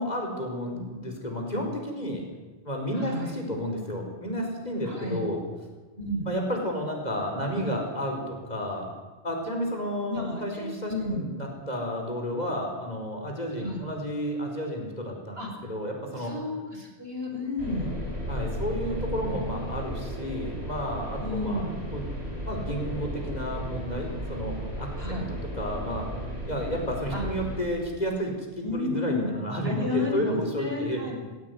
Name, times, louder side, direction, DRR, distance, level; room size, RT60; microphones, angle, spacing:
voice 1, 0.0-2.3 2.6-5.4 6.3-8.9 9.2-16.3 18.3-22.1 22.5-26.1 26.5-31.0, equal, 40° left, 1 dB, 5.2 m, -31 dB
voice 2, 2.9-3.3 4.8-5.2 6.0-6.3 10.1-11.3 13.6-13.8 15.4-15.7 16.2-17.9 21.2-21.7 25.0-25.3 27.1-27.2 28.6-29.3 29.6-31.2, left 2 dB, 70° right, 0 dB, 6.1 m, -32 dB
sound 1, 17.6-27.6, equal, 85° right, 5.5 m, -34 dB
19.5 x 17.0 x 9.7 m, 1.3 s
omnidirectional pair, 1.1 m